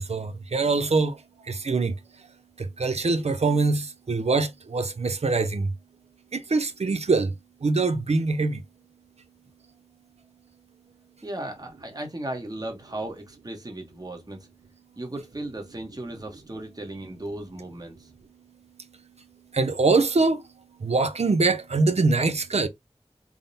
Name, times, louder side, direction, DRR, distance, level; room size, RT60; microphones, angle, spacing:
voice 1, 0.0-2.3 2.6-5.7 6.3-7.3 7.6-8.6 18.8-22.7, right 3 dB, 70° right, 0.6 m, -24 dB
voice 2, 11.2-14.4 15.0-18.1, right 1 dB, 35° right, 1.1 m, -36 dB
3.6 x 2.1 x 3.9 m
wide cardioid pair, 55°, 11 cm